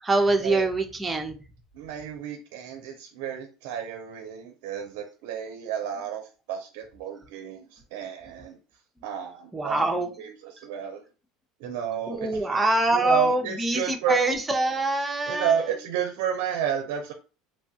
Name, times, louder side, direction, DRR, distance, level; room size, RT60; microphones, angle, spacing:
voice 1, 0.0-1.4 9.5-10.1 12.1-15.5, right 2 dB, 10° right, 3 dB, 0.6 m, -24 dB
voice 2, 1.7-8.6 9.0-9.9 10.2-11.0 11.6-12.6 12.9-14.2 15.3-17.1, right 8 dB, 75° right, 6 dB, 0.4 m, -31 dB
3.0 x 2.2 x 2.7 m, 0.34 s
supercardioid pair, 115°, 0 cm